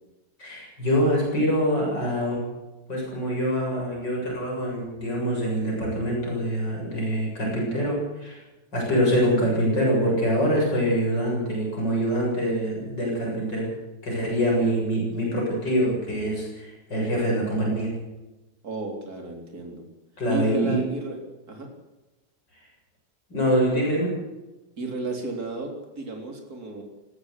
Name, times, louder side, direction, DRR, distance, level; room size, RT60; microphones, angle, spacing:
voice 1, 0.4-2.4 2.9-8.4 8.7-13.7 14.0-17.9 20.2-20.8 23.3-24.1, equal, 70° left, -2 dB, 8.3 m, -24 dB
voice 2, 18.6-19.8 20.3-21.2 21.5-21.7 24.8-25.7 26.0-26.8, right 2 dB, 50° right, 2 dB, 4.2 m, -33 dB
18.5 x 18.0 x 8.4 m, 1.0 s
omnidirectional pair, 2.0 m